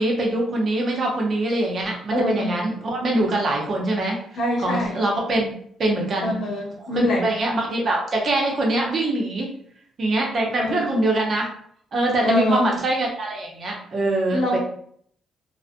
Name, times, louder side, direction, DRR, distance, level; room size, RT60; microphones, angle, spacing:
voice 1, 0.0-4.2 4.6-5.5 5.8-6.3 6.8-9.5 10.0-11.5 11.9-14.6, right 2 dB, 50° right, -1 dB, 0.7 m, -23 dB
voice 2, 2.1-2.6 4.4-5.0 6.2-7.3 10.6-11.0 12.2-12.7 14.3-14.6, equal, 70° left, -1 dB, 0.8 m, -24 dB
2.3 x 2.1 x 2.5 m, 0.64 s
cardioid pair, 90°, 0 cm